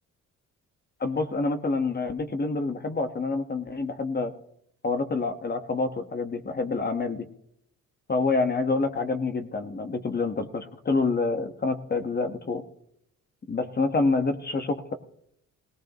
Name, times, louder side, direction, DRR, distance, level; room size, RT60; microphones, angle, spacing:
voice 1, 1.0-4.3 4.8-7.2 8.1-12.6 13.5-14.9, left 3 dB, 35° left, 7 dB, 1.5 m, -27 dB
18.5 x 18.5 x 3.1 m, 0.73 s
cardioid pair, 90°, 30 cm